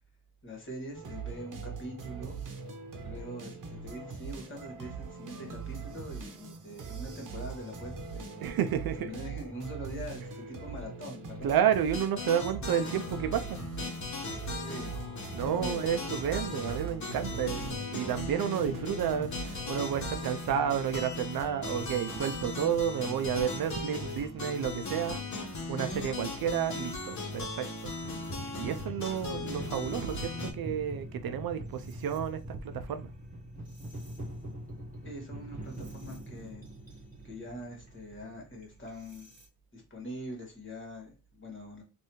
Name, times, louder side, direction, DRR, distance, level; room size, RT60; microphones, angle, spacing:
voice 1, 0.4-2.4 2.9-8.5 9.0-11.6 14.5-15.0 15.4-15.8 35.0-36.6 37.2-39.3 39.7-41.8, equal, 35° left, 1.8 m, -43 dB
sound 1, 0.9-20.3, right 5 dB, 60° right, 0.9 m, -42 dB
voice 2, 8.4-9.1 11.4-13.6 15.3-27.9 28.6-33.1, right 9 dB, 75° right, 0.5 m, -31 dB
sound 2, 11.9-30.5, left 3 dB, 50° left, 1.2 m, -38 dB
sound 3, 27.9-39.5, right 1 dB, 20° right, 1.3 m, -43 dB
3.2 x 2.6 x 3.0 m
cardioid pair, 65°, 36 cm